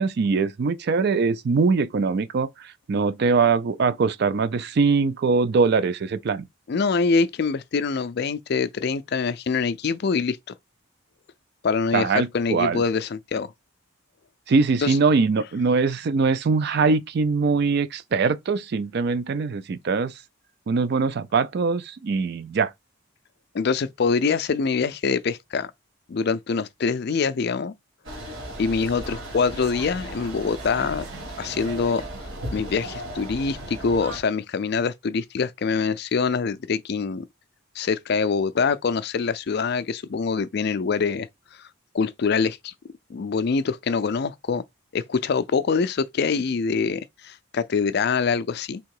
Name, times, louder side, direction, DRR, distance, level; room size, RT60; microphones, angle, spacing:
voice 1, 0.0-6.5 11.9-12.8 14.5-20.1 20.7-22.7, right 4 dB, 50° right, 0.4 m, -22 dB
voice 2, 6.7-10.4 11.6-13.5 14.8-15.0 23.5-25.7 26.1-27.7 28.6-31.0 31.4-32.0 32.5-37.3 37.8-41.3 41.9-42.7 43.1-44.6 44.9-48.8, left 5 dB, 50° left, 0.4 m, -24 dB
sound 1, 28.0-34.2, right 1 dB, 75° right, 1.7 m, -36 dB
3.6 x 2.9 x 4.6 m
head